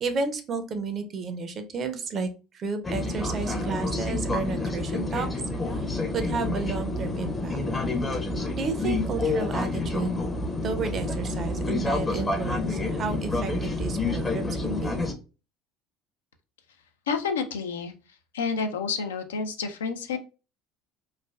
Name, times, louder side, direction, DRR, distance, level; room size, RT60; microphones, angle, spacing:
voice 1, 0.0-5.3 5.7-7.6 8.5-10.2 10.6-14.9, right 4 dB, 40° right, 8 dB, 0.5 m, -32 dB
sound 1, 2.8-15.1, left 2 dB, 20° left, 0.6 m, -28 dB
voice 2, 17.1-17.9 18.3-20.2, left 5 dB, 75° left, 6 dB, 0.3 m, -29 dB
3.2 x 2.2 x 2.2 m, 0.32 s
figure-of-eight pair, 65°, 0 cm